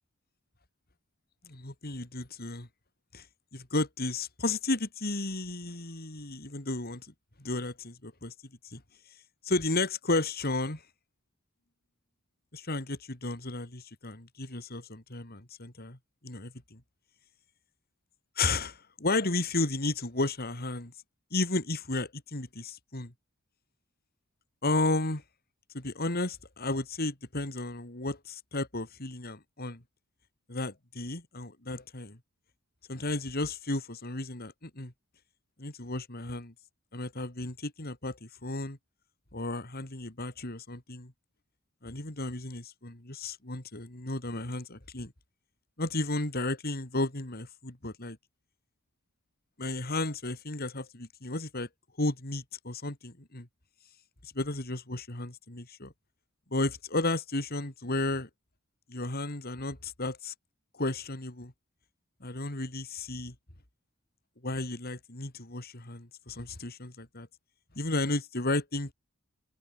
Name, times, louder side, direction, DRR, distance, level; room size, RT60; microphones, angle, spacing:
voice 1, 1.4-2.7 3.1-3.3 3.5-7.1 7.4-8.3 8.6-8.8 9.4-10.8 12.5-16.0 16.2-16.8 18.4-20.9 21.3-23.1 24.6-25.2 25.7-29.8 30.5-32.2 32.9-34.9 35.6-36.5 36.9-38.8 39.3-41.1 41.8-45.1 45.8-48.2 49.6-51.7 52.0-53.5 54.2-55.9 56.5-58.3 58.9-60.3 60.7-61.5 62.2-63.4 64.4-67.3 67.8-68.9, left 2 dB, 45° left, 3.5 m, -33 dB
head